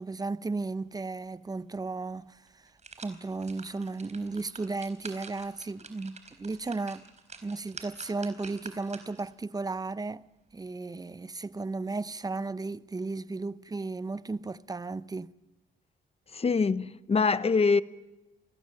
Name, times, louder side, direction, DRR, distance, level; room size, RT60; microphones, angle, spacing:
voice 1, 0.0-2.6 3.0-7.0 7.4-10.3 10.5-15.3, right 3 dB, 20° right, 0.7 m, -35 dB
sound 1, 1.9-2.0 2.5-9.3 9.8-9.9, right 4 dB, 35° right, 4.2 m, -48 dB
voice 2, 16.3-17.8, left 4 dB, 30° left, 1.0 m, -24 dB
28.5 x 20.0 x 7.7 m
cardioid pair, 90°, 20 cm